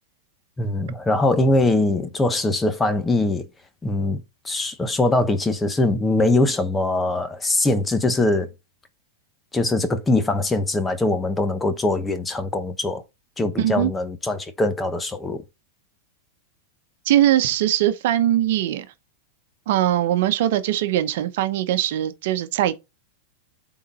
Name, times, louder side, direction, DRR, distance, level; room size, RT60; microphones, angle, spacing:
voice 1, 0.6-3.5 3.8-8.5 9.5-13.0 13.4-15.4, left 2 dB, 10° left, 0.9 m, -22 dB
voice 2, 13.6-13.9 17.0-18.9 19.7-22.7, right 12 dB, 65° right, 0.9 m, -21 dB
8.4 x 3.9 x 4.1 m
hypercardioid pair, 130°, 0 cm